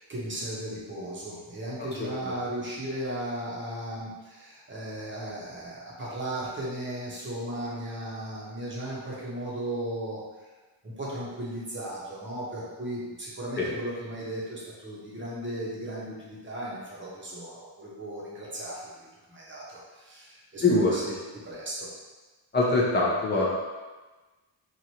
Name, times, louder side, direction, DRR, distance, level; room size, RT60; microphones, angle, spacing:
voice 1, 0.0-10.5 10.8-21.0 21.4-21.9, right 1 dB, 25° right, -6 dB, 0.9 m, -36 dB
voice 2, 2.0-2.3 13.6-13.7 20.6-21.0 22.5-23.6, left 2 dB, 20° left, -4 dB, 0.7 m, -24 dB
3.1 x 2.5 x 2.8 m, 1.2 s
cardioid pair, 115°, 47 cm